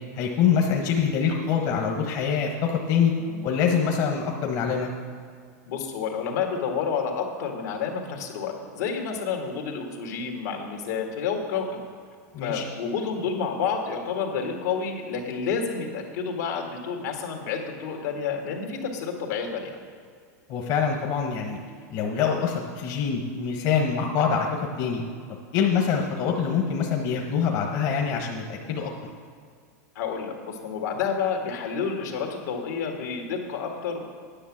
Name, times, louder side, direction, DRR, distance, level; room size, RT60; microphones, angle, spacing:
voice 1, 0.1-3.1 3.4-4.9 12.3-12.7 20.5-21.6 21.9-25.0 25.5-28.9, left 6 dB, 45° left, 1 dB, 1.1 m, -25 dB
voice 2, 5.7-11.8 12.4-19.8 30.0-34.0, left 6 dB, 80° left, 2 dB, 1.9 m, -29 dB
10.0 x 6.1 x 7.3 m, 2.1 s
supercardioid pair, 135°, 9 cm